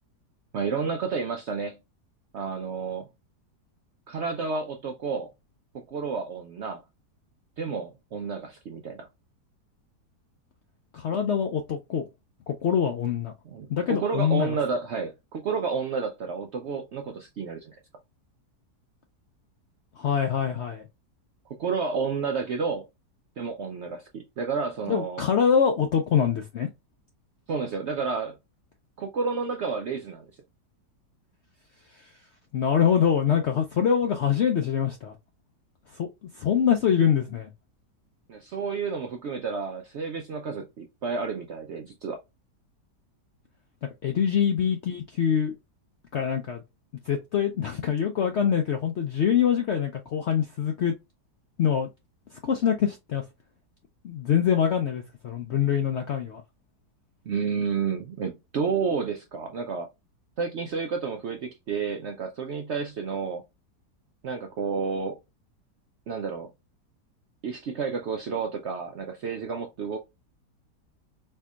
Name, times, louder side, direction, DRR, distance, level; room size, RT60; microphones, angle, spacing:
voice 1, 0.5-1.8 2.3-3.1 4.1-5.3 5.7-6.8 7.6-9.1 13.5-17.7 21.6-22.8 23.4-25.2 27.5-28.4 29.0-30.3 38.3-42.2 57.3-59.9 60.4-63.4 64.2-65.2 66.1-66.5 67.4-70.0, right 5 dB, 80° right, 0.6 m, -30 dB
voice 2, 10.9-12.1 12.5-13.3 13.7-14.6 20.0-20.9 24.9-26.7 31.9-32.1 32.5-35.2 35.9-36.1 36.3-37.5 44.0-45.5 46.1-46.6 47.0-50.9 51.6-51.9 52.3-53.2 54.0-56.4, left 8 dB, 75° left, 0.6 m, -24 dB
4.4 x 2.7 x 2.3 m
omnidirectional pair, 1.8 m